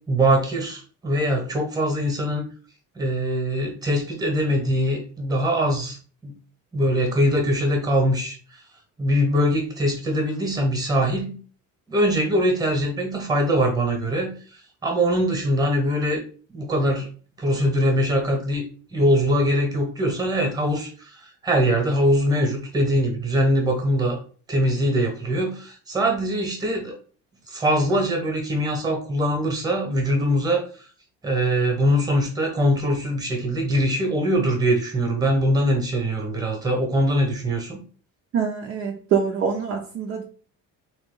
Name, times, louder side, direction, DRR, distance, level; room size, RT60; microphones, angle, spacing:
voice 1, 0.1-2.5 2.9-6.0 6.2-6.3 6.7-8.6 9.0-11.4 11.9-16.2 16.5-17.1 17.4-18.6 18.9-24.2 24.5-27.0 27.5-30.9 31.2-37.8, equal, 10° right, 2 dB, 1.1 m, -22 dB
voice 2, 38.3-40.2, right 7 dB, 45° right, 1 dB, 0.6 m, -25 dB
3.8 x 3.0 x 3.8 m, 0.40 s
cardioid pair, 165°, 33 cm